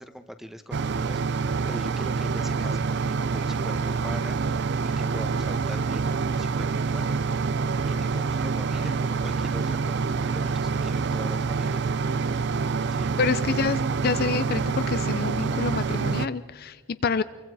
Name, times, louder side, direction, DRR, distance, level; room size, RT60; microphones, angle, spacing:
voice 1, 0.0-4.6 4.8-7.2 7.9-11.9 12.9-13.2, equal, ahead, 9 dB, 1.1 m, -42 dB
sound 1, 0.7-16.3, right 5 dB, 55° right, 0.6 m, -26 dB
voice 2, 13.2-17.2, left 5 dB, 50° left, 13 dB, 0.5 m, -27 dB
25.5 x 23.0 x 4.8 m, 1.4 s
head